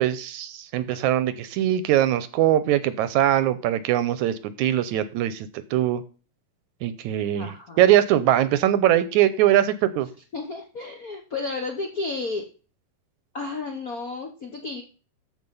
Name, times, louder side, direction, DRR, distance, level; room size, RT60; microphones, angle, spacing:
voice 1, 0.0-6.0 6.8-10.1, right 12 dB, 80° right, 14 dB, 1.9 m, -22 dB
voice 2, 7.3-7.9 10.3-12.4 13.3-14.8, left 3 dB, 90° left, 3 dB, 0.7 m, -32 dB
14.0 x 5.2 x 5.4 m, 0.37 s
omnidirectional pair, 3.7 m